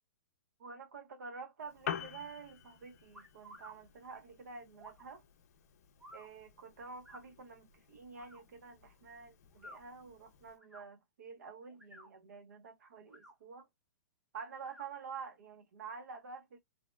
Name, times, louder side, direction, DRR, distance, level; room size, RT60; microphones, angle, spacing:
voice 1, 0.6-5.2 6.1-13.7 14.3-16.6, right 5 dB, 70° right, 0.7 m, -49 dB
Piano, 1.6-10.6, left 9 dB, 60° left, 0.5 m, -49 dB
sound 1, 3.1-3.8 4.7-5.1 6.0-6.3 7.0-7.2 8.1-8.4 9.5-9.8 10.6-10.9 11.7-12.1 13.0-13.3 14.6-14.9, equal, 5° right, 0.7 m, -54 dB
2.7 x 2.0 x 2.2 m
hypercardioid pair, 155°, 9 cm